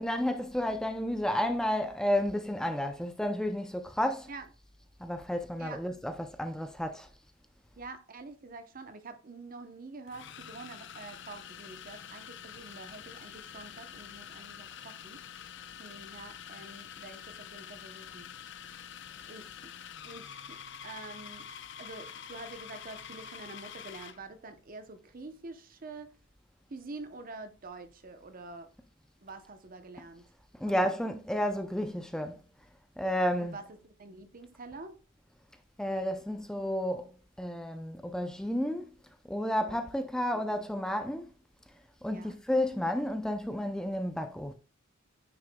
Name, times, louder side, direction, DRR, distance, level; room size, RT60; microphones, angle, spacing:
voice 1, 0.0-4.3 5.0-7.1 30.5-32.4 33.0-33.6 35.8-37.1 37.4-38.9 39.3-41.3 42.0-44.5, left 1 dB, 5° left, 0.5 m, -31 dB
voice 2, 7.8-15.2 15.8-18.5 19.3-19.7 20.0-21.5 21.8-26.1 26.7-28.7 29.2-30.3 30.8-31.1 33.4-35.0 39.6-39.8 40.3-40.8 42.1-42.4, right 3 dB, 45° right, 0.8 m, -47 dB
sound 1, 8.7-8.9 10.1-24.2, left 8 dB, 60° left, 0.5 m, -46 dB
9.2 x 6.2 x 2.3 m
head